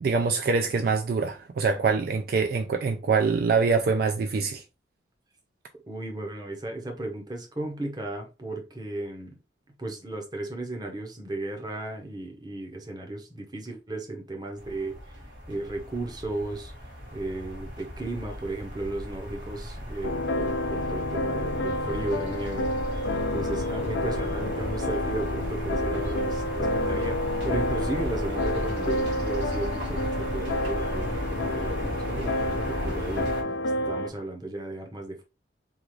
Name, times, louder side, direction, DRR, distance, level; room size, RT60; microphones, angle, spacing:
voice 1, 0.0-4.6, right 4 dB, 55° right, 0.3 m, -24 dB
voice 2, 5.9-9.3 9.8-15.0 15.5-16.7 17.1-22.7 23.3-33.3 33.9-35.2, right 2 dB, 20° right, 0.8 m, -35 dB
sound 1, 14.6-33.4, equal, 85° right, 1.5 m, -35 dB
sound 2, 20.0-34.1, left 1 dB, 85° left, 0.5 m, -29 dB
3.6 x 2.4 x 3.1 m
head